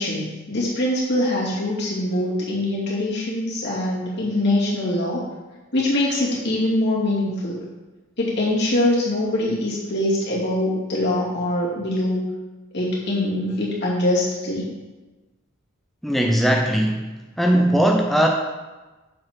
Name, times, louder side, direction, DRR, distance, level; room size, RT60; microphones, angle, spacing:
voice 1, 0.0-5.2 5.7-7.6 8.2-12.2 12.7-14.8, left 1 dB, 55° left, -6 dB, 2.5 m, -23 dB
voice 2, 16.0-17.1 17.4-18.3, right 1 dB, ahead, 0 dB, 0.5 m, -19 dB
7.5 x 4.2 x 6.0 m, 1.2 s
head